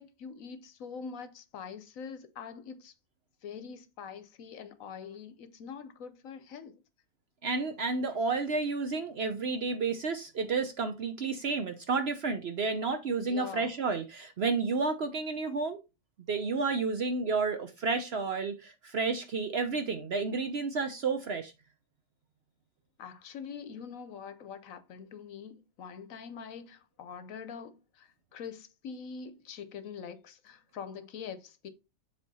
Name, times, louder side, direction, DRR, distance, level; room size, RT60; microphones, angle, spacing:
voice 1, 0.0-2.9 3.4-6.8 13.2-13.7 23.0-31.7, left 6 dB, 65° left, 1.1 m, -44 dB
voice 2, 7.4-15.8 16.3-21.5, right 4 dB, 55° right, 0.8 m, -31 dB
7.4 x 3.4 x 4.1 m
omnidirectional pair, 1.6 m